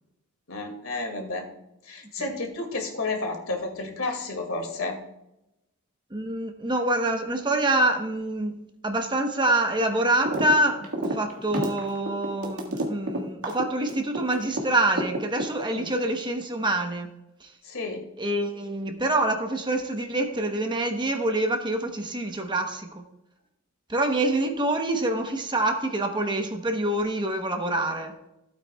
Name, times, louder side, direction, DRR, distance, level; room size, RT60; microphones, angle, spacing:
voice 1, 0.5-1.5 1.8-5.0 15.6-15.9 17.6-18.0, left 3 dB, 70° left, 2 dB, 2.3 m, -31 dB
voice 2, 6.1-8.6 8.8-17.1 17.4-17.5 18.2-23.0 23.9-28.1, right 1 dB, 20° right, 4 dB, 1.0 m, -26 dB
sound 1, 10.3-10.5 10.8-14.6 15.0-15.9, right 1 dB, 90° right, 1.8 m, -29 dB
15.5 x 8.6 x 2.3 m, 0.87 s
head